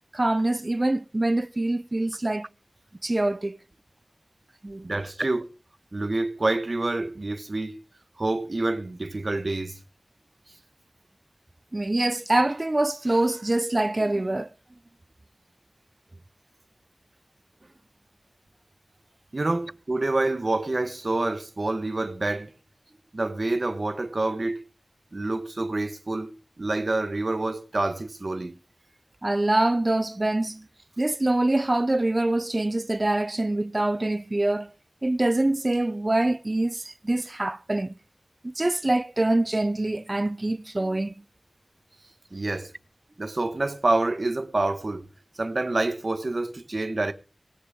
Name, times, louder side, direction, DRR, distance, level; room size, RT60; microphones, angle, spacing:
voice 1, 0.1-2.5 3.0-3.6 4.6-4.9 11.7-14.5 29.2-30.7 31.0-34.7 35.0-37.9 38.4-41.1, right 2 dB, 40° right, 0.5 m, -25 dB
voice 2, 4.8-5.5 5.9-7.8 8.2-9.8 19.3-22.5 23.1-24.6 25.1-28.6 42.3-42.7 43.2-45.1 45.4-47.1, right 2 dB, 60° right, 1.2 m, -27 dB
19.0 x 6.9 x 5.0 m
wide cardioid pair, 45°, 0 cm